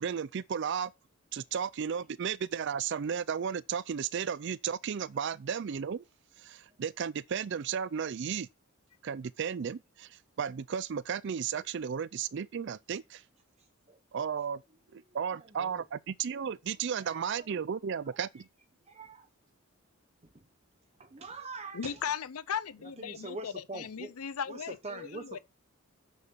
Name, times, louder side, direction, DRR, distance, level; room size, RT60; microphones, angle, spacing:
voice 1, 0.0-0.9 1.3-6.0 6.4-8.5 9.0-13.2 14.1-14.6 14.9-18.5, right 7 dB, 55° right, 0.4 m, -34 dB
voice 2, 15.1-15.8 17.0-17.5 18.9-19.3 20.3-20.4 21.0-22.1 22.8-24.2 24.5-25.4, right 3 dB, 30° right, 0.8 m, -44 dB
voice 3, 21.7-25.4, left 7 dB, 90° left, 0.6 m, -37 dB
7.2 x 6.7 x 5.7 m
head